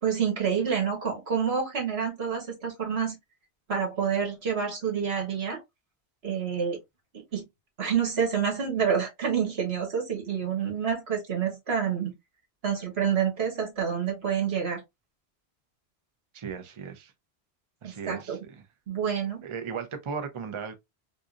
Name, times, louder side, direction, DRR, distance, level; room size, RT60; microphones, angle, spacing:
voice 1, 0.0-3.1 3.7-5.6 6.2-6.8 7.3-7.4 7.8-12.1 12.6-14.8 17.8-18.4 18.9-19.4, right 7 dB, 70° right, 1.5 m, -28 dB
voice 2, 16.3-17.1 17.8-18.6 19.4-20.7, right 6 dB, 35° right, 0.5 m, -36 dB
3.7 x 2.7 x 2.4 m
omnidirectional pair, 1.1 m